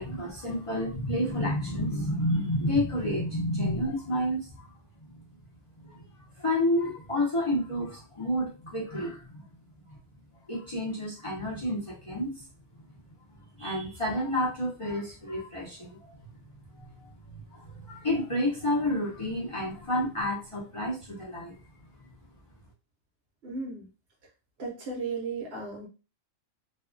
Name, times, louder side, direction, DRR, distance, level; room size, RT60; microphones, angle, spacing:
voice 1, 0.0-4.6 5.0-5.2 5.8-6.1 6.4-9.4 9.9-10.0 10.5-12.4 12.7-12.8 13.6-16.2 16.8-21.6, left 1 dB, 35° left, -6 dB, 0.6 m, -30 dB
voice 2, 23.4-23.9 24.6-25.9, right 4 dB, 55° right, -2 dB, 0.8 m, -35 dB
2.5 x 2.3 x 2.5 m, 0.31 s
omnidirectional pair, 1.4 m